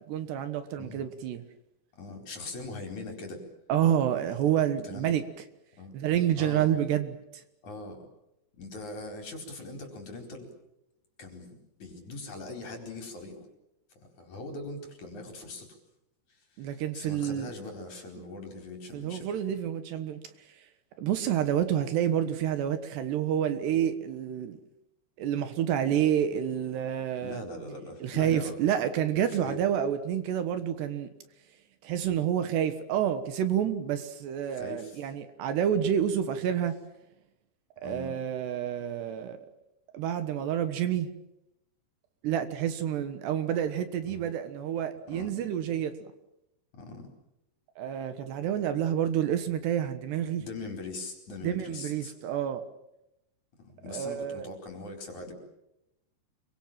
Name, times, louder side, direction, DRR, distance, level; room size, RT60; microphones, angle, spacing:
voice 1, 0.1-1.4 3.7-5.2 5.9-7.4 16.6-17.5 18.9-20.2 21.0-24.6 25.2-27.4 28.0-31.1 31.8-36.8 37.8-39.4 39.9-41.1 42.2-46.1 47.8-50.4 51.4-52.6 53.9-54.5, right 10 dB, 70° right, 3.4 m, -29 dB
voice 2, 1.9-3.4 4.2-4.5 4.8-5.2 5.8-5.9 6.4-6.8 7.6-8.0 8.6-10.5 11.2-13.5 14.0-15.7 16.6-19.3 27.2-28.6 29.3-29.7 34.5-35.1 37.8-38.2 44.1-44.3 45.1-45.3 46.8-47.1 50.4-52.1 53.6-55.3, left 2 dB, 40° left, 5.6 m, -41 dB
28.0 x 24.0 x 7.5 m
omnidirectional pair, 5.2 m